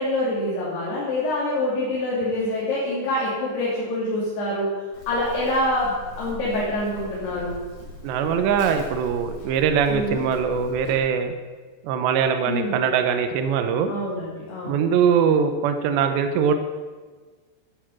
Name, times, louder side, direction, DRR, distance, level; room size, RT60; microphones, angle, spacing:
voice 1, 0.0-4.7 5.1-7.6 9.9-10.2 12.5-12.8 13.9-14.9, left 1 dB, 65° left, -7 dB, 4.7 m, -26 dB
Livestock farm animals working animals, 4.9-11.0, equal, 35° left, 3.6 m, -40 dB
voice 2, 8.0-11.3 11.8-13.9 14.6-16.5, right 7 dB, 90° right, 7 dB, 3.0 m, -22 dB
11.0 x 9.3 x 7.4 m, 1.4 s
omnidirectional pair, 5.0 m